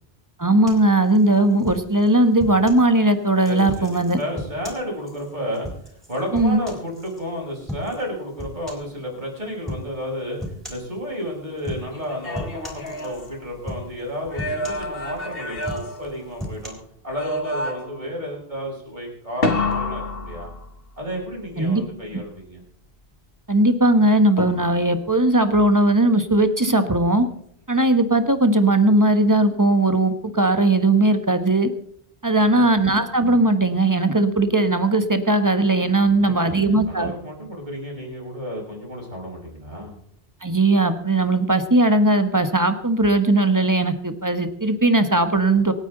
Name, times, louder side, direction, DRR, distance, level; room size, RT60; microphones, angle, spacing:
voice 1, 0.4-4.2 6.3-6.6 21.6-21.8 23.5-27.2 27.7-31.7 32.2-37.1 40.4-45.7, right 2 dB, 20° right, 9 dB, 1.2 m, -18 dB
sound 1, 0.7-2.9 3.4-7.2 7.7-8.1 8.4-9.0 9.7-9.9 10.4-10.9 11.6-12.1 12.3-13.3 13.7-14.1 14.4-15.2 15.6-16.7, left 1 dB, ahead, 4.0 m, -36 dB
voice 2, 3.4-16.7 17.0-20.5 21.0-22.6 32.5-33.0 36.0-40.0, equal, 45° right, -2 dB, 6.2 m, -32 dB
sound 2, 11.9-13.8 14.3-16.7 17.1-18.1 19.4-21.0 24.4-25.0, left 2 dB, 65° left, 1.9 m, -29 dB
26.0 x 9.3 x 4.0 m, 0.68 s
omnidirectional pair, 1.1 m